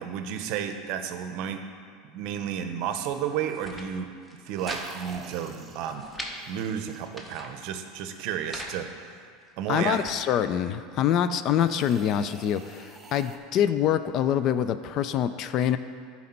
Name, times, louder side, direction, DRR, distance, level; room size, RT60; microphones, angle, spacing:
voice 1, 0.0-1.6 2.0-4.1 4.5-6.0 6.5-9.1 9.6-10.0, right 8 dB, 60° right, 7 dB, 0.6 m, -32 dB
sound 1, 3.5-3.9 4.2-4.9 5.1-5.2 5.6-6.3 6.9-7.5 8.2-8.8 9.4-10.2, equal, 5° left, 1.0 m, -40 dB
sound 2, 4.6-7.7 11.5-13.4, right 4 dB, 25° right, 0.6 m, -48 dB
voice 2, 9.7-15.8, left 9 dB, 45° left, 12 dB, 0.3 m, -25 dB
10.5 x 4.2 x 4.4 m, 2.2 s
supercardioid pair, 120°, 0 cm